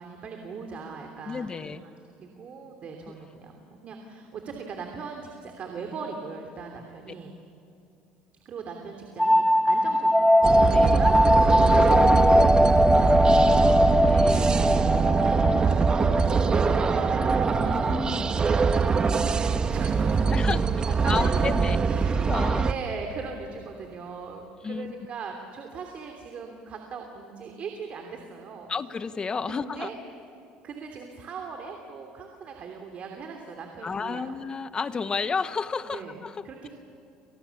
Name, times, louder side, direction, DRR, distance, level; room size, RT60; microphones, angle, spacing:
voice 1, 0.0-7.3 8.4-18.9 19.2-20.4 20.9-22.2 22.5-28.7 29.5-29.9 30.6-34.3 35.8-36.2 36.4-36.7, right 5 dB, 45° right, 3 dB, 3.0 m, -40 dB
voice 2, 1.2-1.8 10.6-11.0 14.1-14.5 17.6-18.2 20.3-20.7 21.0-21.8 22.1-22.7 24.6-24.9 28.7-29.9 33.8-36.7, left 5 dB, 30° left, 12 dB, 1.2 m, -31 dB
sound 1, 9.2-18.6, left 1 dB, ahead, 0.7 m, -21 dB
sound 2, 10.4-22.7, right 5 dB, 30° right, 1.3 m, -23 dB
30.0 x 25.5 x 7.2 m, 2.7 s
supercardioid pair, 105°, 3 cm